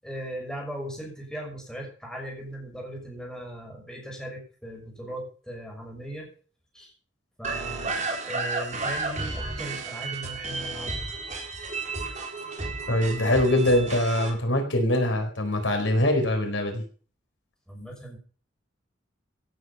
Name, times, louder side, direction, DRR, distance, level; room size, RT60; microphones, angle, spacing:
voice 1, 0.0-6.3 6.7-6.9 7.4-7.9 8.2-11.1 17.7-18.2, right 1 dB, 5° left, 0 dB, 6.3 m, -38 dB
sound 1, 7.4-14.3, right 3 dB, 40° right, 4.3 m, -32 dB
voice 2, 12.9-16.8, left 1 dB, 85° left, 5 dB, 4.3 m, -23 dB
17.0 x 9.1 x 5.6 m, 0.41 s
head